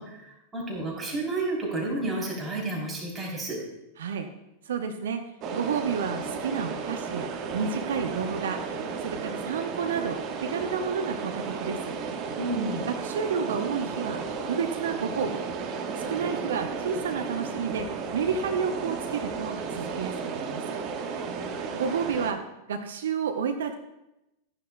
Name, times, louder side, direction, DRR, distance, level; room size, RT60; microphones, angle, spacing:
voice 1, 0.0-3.6 12.4-12.8 21.1-21.6, right 2 dB, 15° right, -3 dB, 3.3 m, -31 dB
voice 2, 4.0-4.3 4.6-5.2 5.5-8.6 9.0-11.9 12.9-15.4 16.0-20.8 21.7-22.4 22.7-23.7, right 6 dB, 60° right, 6 dB, 0.7 m, -30 dB
sound 1, 5.4-22.3, right 5 dB, 35° right, 1.1 m, -34 dB
14.0 x 10.5 x 2.2 m, 0.91 s
figure-of-eight pair, 90°, 0 cm